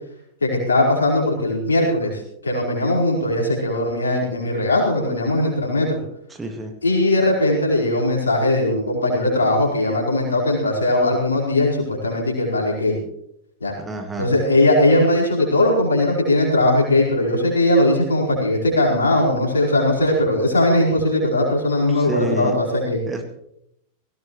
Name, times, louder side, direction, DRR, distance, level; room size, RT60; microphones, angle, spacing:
voice 1, 0.4-6.0 6.8-13.0 13.6-13.7 14.2-23.0, left 1 dB, 75° left, -1 dB, 4.8 m, -19 dB
voice 2, 6.4-6.7 13.8-14.3 21.9-22.5 23.1-23.2, right 2 dB, 15° right, 4 dB, 1.9 m, -28 dB
18.5 x 16.5 x 3.2 m, 0.75 s
figure-of-eight pair, 90°, 0 cm